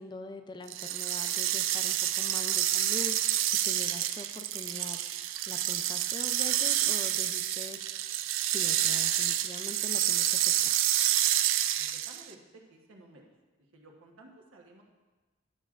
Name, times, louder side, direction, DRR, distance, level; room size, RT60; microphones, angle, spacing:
voice 1, 0.0-5.0 5.5-10.7, left 2 dB, 20° left, 7 dB, 0.4 m, -44 dB
sound 1, 0.7-12.3, right 12 dB, 70° right, 0.3 m, -28 dB
voice 2, 11.8-12.4 12.7-13.2 13.7-14.8, right 2 dB, 85° right, 0 dB, 1.2 m, -54 dB
11.0 x 7.3 x 2.5 m, 1.2 s
head